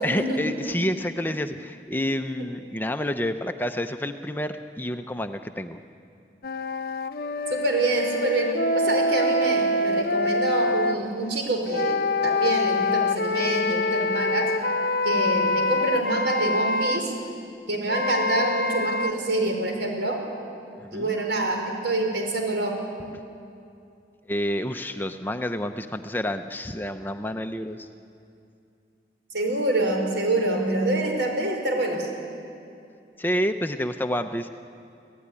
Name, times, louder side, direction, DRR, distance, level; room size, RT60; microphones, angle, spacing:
voice 1, 0.0-5.8 20.8-21.2 23.1-23.2 24.3-27.9 33.2-34.5, equal, 10° left, 8 dB, 0.6 m, -29 dB
sound 1, 6.4-11.0 11.7-17.0 17.9-19.1, left 2 dB, 55° left, 0.8 m, -25 dB
voice 2, 7.5-14.5 15.0-17.1 17.7-20.2 20.9-22.7 29.3-32.1, right 2 dB, 80° right, 2 dB, 5.1 m, -26 dB
25.5 x 16.5 x 9.9 m, 2.5 s
head